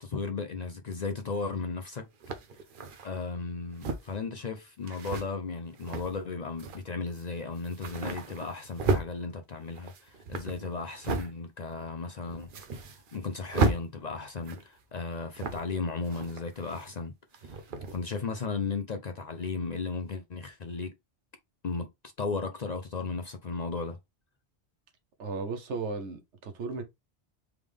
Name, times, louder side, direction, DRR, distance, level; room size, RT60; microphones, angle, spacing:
voice 1, 0.0-2.1 3.0-17.1 17.4-17.5 17.9-20.9 21.6-24.0, left 4 dB, 50° left, 0.5 m, -35 dB
sound 1, 1.3-1.4 2.2-3.1 3.7-4.2 4.9-5.2 5.7-6.2 6.6-6.8 7.2-7.3 7.6-9.1 9.6-11.3 11.7-11.8 12.2-13.3 13.5-13.8 14.4-14.8 15.3-15.8 16.0-17.0 17.3-18.0, right 3 dB, 55° right, 0.8 m, -33 dB
voice 2, 25.2-26.8, right 4 dB, 80° right, 1.2 m, -35 dB
3.6 x 3.5 x 3.3 m
omnidirectional pair, 1.2 m